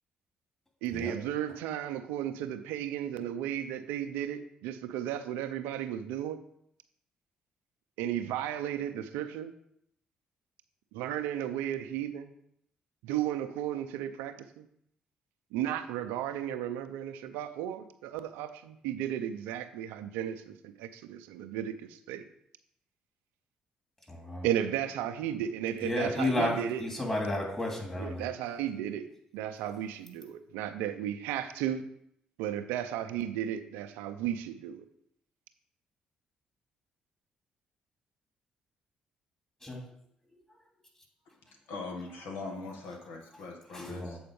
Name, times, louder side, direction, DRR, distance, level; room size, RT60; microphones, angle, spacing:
voice 1, 0.8-6.4 8.0-9.5 10.9-12.3 13.0-14.7 15.5-22.2 24.4-26.8 28.0-29.1 29.3-31.8 32.4-34.8, right 10 dB, 85° right, 9 dB, 0.5 m, -34 dB
voice 2, 24.1-24.5 25.8-28.3 39.6-39.8 43.7-44.2, left 1 dB, 15° left, 0 dB, 3.1 m, -32 dB
voice 3, 41.7-44.2, left 3 dB, 75° left, 2 dB, 1.3 m, -41 dB
7.8 x 4.3 x 5.3 m, 0.73 s
hypercardioid pair, 50°, 3 cm